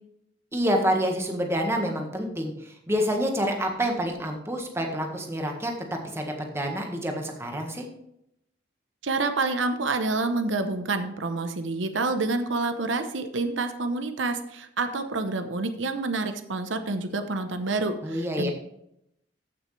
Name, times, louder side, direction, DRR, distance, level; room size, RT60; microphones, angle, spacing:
voice 1, 0.5-7.8 18.0-18.5, equal, 15° right, 2 dB, 1.6 m, -28 dB
voice 2, 9.0-18.5, right 3 dB, 85° right, 8 dB, 0.9 m, -28 dB
14.5 x 6.2 x 3.3 m, 0.77 s
head